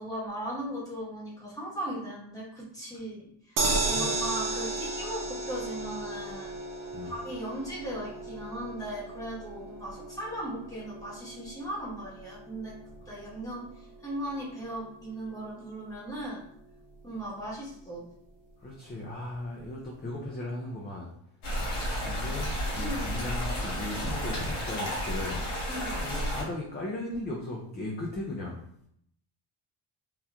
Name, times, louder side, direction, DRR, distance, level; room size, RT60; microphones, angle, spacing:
voice 1, 0.0-6.5 7.0-12.7 13.1-13.7 14.0-16.4 17.0-18.0 22.8-23.0 25.7-26.0, right 1 dB, 5° left, -6 dB, 1.0 m, -37 dB
sound 1, 3.6-15.8 16.2-16.3 16.6-16.7, right 2 dB, 40° right, 0.7 m, -35 dB
voice 2, 3.7-4.2 6.9-7.1 18.6-21.1 21.5-25.4 26.0-28.6, left 1 dB, 25° left, -2 dB, 0.3 m, -37 dB
sound 2, 21.4-26.4, equal, 90° left, 1.4 m, -32 dB
3.6 x 2.8 x 2.2 m, 0.69 s
cardioid pair, 150°, 48 cm